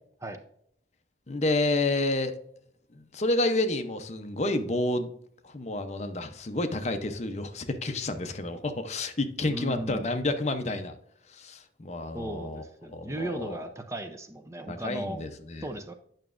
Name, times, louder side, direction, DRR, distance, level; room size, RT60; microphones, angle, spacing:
voice 1, 1.3-2.4 2.9-5.1 5.4-10.9 11.3-12.7 12.9-13.6 14.7-15.7, left 2 dB, 40° left, 8 dB, 0.7 m, -30 dB
voice 2, 9.5-10.0 12.1-15.2 15.6-15.9, right 1 dB, 15° right, 6 dB, 0.5 m, -36 dB
9.0 x 5.9 x 2.5 m, 0.68 s
head